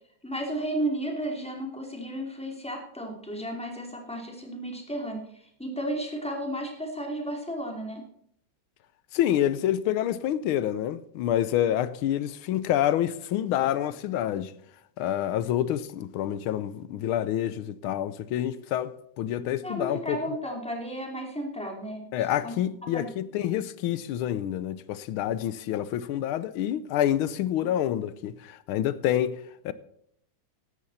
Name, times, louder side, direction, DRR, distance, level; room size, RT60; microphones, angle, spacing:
voice 1, 0.2-5.2 5.6-8.0 19.6-22.1 22.4-22.6 22.9-23.1, right 1 dB, 5° left, 2.7 m, -33 dB
voice 2, 9.1-14.5 15.0-20.2 22.1-29.7, left 11 dB, 85° left, 1.5 m, -27 dB
15.5 x 11.5 x 4.2 m
omnidirectional pair, 2.3 m